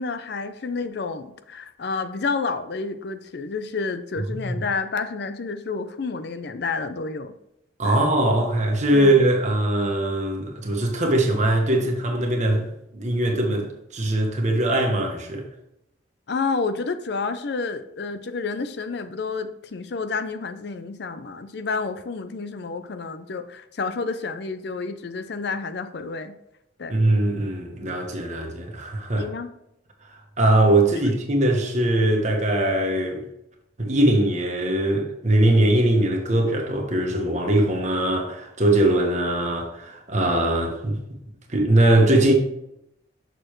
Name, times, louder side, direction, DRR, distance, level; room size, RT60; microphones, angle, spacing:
voice 1, 0.0-7.3 7.8-8.0 8.9-9.2 16.3-26.4 26.8-27.0 29.1-29.5, left 4 dB, 60° left, 0.5 m, -30 dB
voice 2, 7.8-12.7 12.9-15.5 26.9-29.3 30.4-33.2 33.8-41.0 41.5-42.3, right 1 dB, 40° right, 1.3 m, -21 dB
6.7 x 6.5 x 3.1 m
head